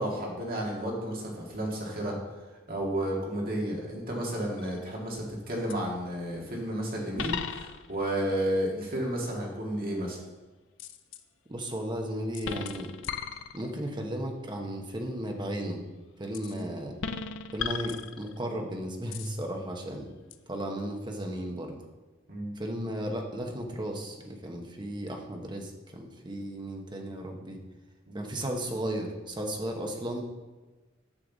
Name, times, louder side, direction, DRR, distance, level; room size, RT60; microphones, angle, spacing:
voice 1, 0.0-2.2 2.7-10.2 16.5-16.6 22.3-22.5 28.1-28.2, right 1 dB, 50° right, -2 dB, 2.0 m, -32 dB
sound 1, 4.6-5.0 5.7-5.8 7.2-8.1 10.8-11.2 12.3-13.9 16.3-16.6 17.0-18.6 19.1-19.4 20.3-20.4, left 7 dB, 70° left, 0.5 m, -37 dB
voice 2, 11.5-12.9 13.5-15.8 16.2-16.9 17.5-20.1 20.5-21.8 22.6-27.6 28.1-30.2, right 1 dB, 25° right, 2 dB, 1.0 m, -35 dB
9.8 x 6.7 x 4.0 m, 1.2 s
head